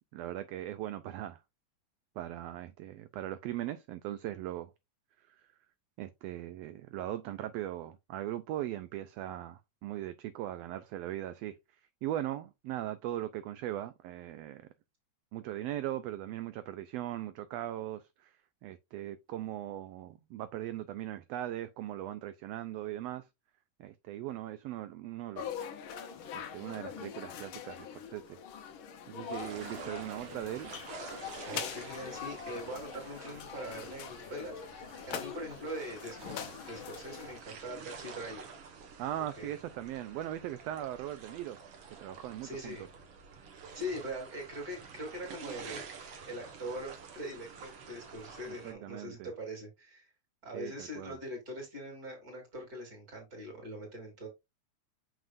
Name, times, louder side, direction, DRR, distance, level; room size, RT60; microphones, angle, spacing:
voice 1, 0.1-1.4 2.1-4.7 5.2-5.5 6.0-11.6 12.0-14.6 15.3-23.3 23.8-25.6 26.3-28.4 29.1-30.7 39.0-41.6 41.9-42.8 48.5-49.3 50.5-51.2, right 13 dB, 80° right, 1.4 m, -39 dB
sound 1, 25.4-37.4, left 8 dB, 70° left, 1.2 m, -43 dB
sound 2, 29.3-48.7, right 6 dB, 55° right, 2.1 m, -49 dB
voice 2, 31.4-38.5 39.4-39.6 42.4-42.8 43.7-50.1 50.4-54.3, equal, 30° right, 3.2 m, -42 dB
7.1 x 6.0 x 2.5 m
omnidirectional pair, 3.3 m